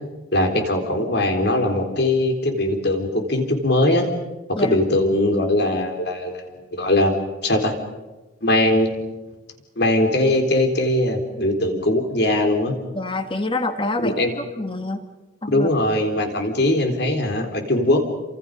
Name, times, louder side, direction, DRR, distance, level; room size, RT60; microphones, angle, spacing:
voice 1, 0.3-4.1 4.5-7.1 7.4-7.7 8.4-9.1 9.8-12.7 14.0-14.3 15.5-18.0, left 1 dB, 55° left, 4 dB, 3.9 m, -20 dB
voice 2, 12.9-15.0 15.4-15.7, left 2 dB, 25° left, 7 dB, 1.7 m, -26 dB
29.5 x 26.5 x 5.4 m, 1.2 s
head